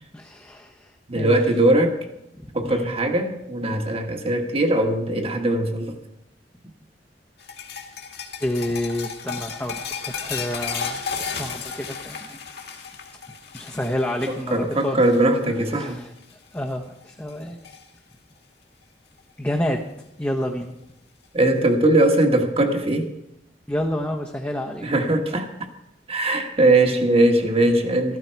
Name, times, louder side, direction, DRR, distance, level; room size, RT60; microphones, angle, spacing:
voice 1, 0.1-1.4 2.4-3.0 8.4-11.0 11.3-12.4 13.5-15.0 15.5-16.1 16.5-17.6 19.4-19.8 20.2-20.8 23.7-25.0, left 1 dB, 10° left, 1 dB, 0.9 m, -29 dB
voice 2, 1.1-2.0 2.5-6.0 14.3-16.0 21.3-23.1 24.8-25.5 26.1-28.2, right 1 dB, 35° right, 4 dB, 1.4 m, -20 dB
sound 1, 7.4-15.9 16.2-16.6 17.0-17.8 19.2-19.3 20.5-20.6, left 6 dB, 65° left, 2.0 m, -34 dB
13.5 x 13.5 x 4.6 m, 0.85 s
head